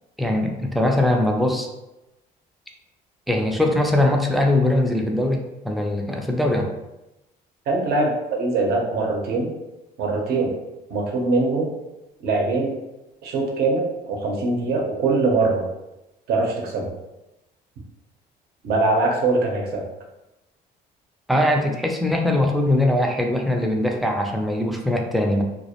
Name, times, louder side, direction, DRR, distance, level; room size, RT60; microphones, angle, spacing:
voice 1, 0.2-1.7 3.3-6.7 21.3-25.4, left 1 dB, ahead, 1 dB, 0.3 m, -21 dB
voice 2, 7.7-9.5 10.0-10.5 10.9-11.7 12.2-12.8 13.2-15.7 16.3-16.9 18.6-19.8, right 3 dB, 70° right, 0 dB, 0.6 m, -22 dB
2.4 x 2.0 x 2.8 m, 0.96 s
cardioid pair, 110°, 17 cm